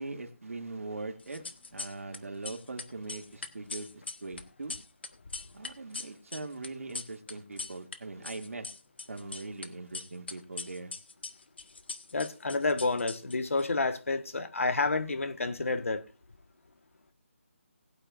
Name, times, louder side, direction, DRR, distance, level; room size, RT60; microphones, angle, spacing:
voice 1, 0.0-1.4 1.7-4.7 5.5-8.7 9.1-10.9, right 3 dB, 85° right, 2.4 m, -41 dB
sound 1, 1.2-2.2 2.4-8.0 8.2-9.7 9.9-13.6, left 4 dB, 50° left, 1.1 m, -41 dB
voice 2, 12.1-16.0, left 3 dB, 75° left, 1.5 m, -29 dB
20.0 x 8.9 x 2.5 m
hypercardioid pair, 175°, 7 cm